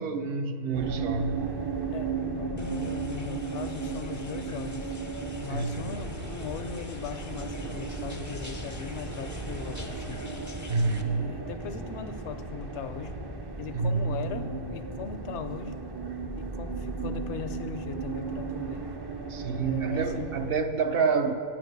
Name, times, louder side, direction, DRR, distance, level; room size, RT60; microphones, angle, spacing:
voice 1, 0.0-1.5 5.5-5.8 10.7-11.3 13.7-14.2 19.3-21.3, right 4 dB, 65° right, 8 dB, 0.8 m, -28 dB
sound 1, 0.7-20.5, right 4 dB, 35° right, 0.4 m, -35 dB
voice 2, 1.9-4.9 5.4-10.2 11.0-13.2 13.6-15.8 16.3-18.9 19.6-20.3, left 6 dB, 85° left, 9 dB, 1.0 m, -38 dB
sound 2, 2.6-11.0, left 2 dB, 25° left, 0.4 m, -46 dB
9.7 x 7.3 x 6.6 m, 2.5 s
omnidirectional pair, 1.1 m